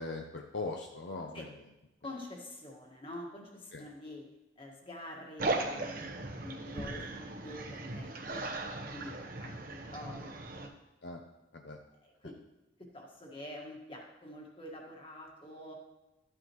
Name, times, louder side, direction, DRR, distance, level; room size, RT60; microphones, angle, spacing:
voice 1, 0.0-1.5 3.7-3.9 6.9-7.1 11.0-11.2 11.5-11.8, left 3 dB, 60° left, 2 dB, 0.7 m, -40 dB
voice 2, 2.0-4.2 4.5-6.1 6.4-10.7 12.0-12.4 12.8-15.7, left 1 dB, 30° left, 0 dB, 1.7 m, -47 dB
sound 1, 5.4-10.7, right 2 dB, 45° right, 1.0 m, -38 dB
13.0 x 8.7 x 3.1 m, 0.98 s
head